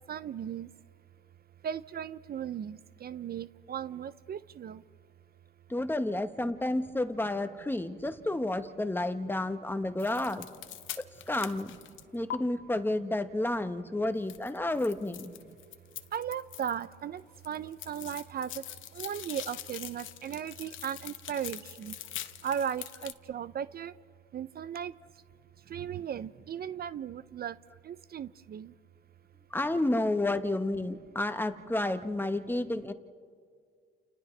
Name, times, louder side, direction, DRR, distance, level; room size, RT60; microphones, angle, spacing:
voice 1, 0.1-0.7 1.6-4.8 16.1-17.2 17.5-18.6 19.0-21.9 22.4-23.9 24.3-24.9 25.7-27.5 27.9-28.7, right 9 dB, 50° right, 15 dB, 0.5 m, -36 dB
voice 2, 5.7-10.4 11.0-11.7 12.1-15.3 29.5-32.9, left 1 dB, 10° left, 8 dB, 1.2 m, -31 dB
sound 1, 10.0-12.4 14.3-16.9 17.2-23.1, left 11 dB, 80° left, 1.0 m, -43 dB
30.0 x 30.0 x 3.3 m, 2.1 s
cardioid pair, 90°, 20 cm